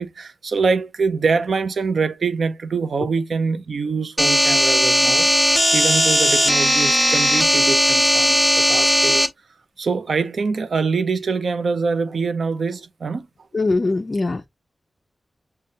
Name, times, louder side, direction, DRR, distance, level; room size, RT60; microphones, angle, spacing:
voice 1, 0.0-9.3 9.8-13.3, right 4 dB, 75° right, 0.5 m, -24 dB
sound 1, 4.2-9.3, equal, ahead, 1.0 m, -17 dB
voice 2, 13.5-14.5, left 3 dB, 35° left, 0.5 m, -21 dB
6.5 x 2.2 x 2.7 m
wide cardioid pair, 125°, 0 cm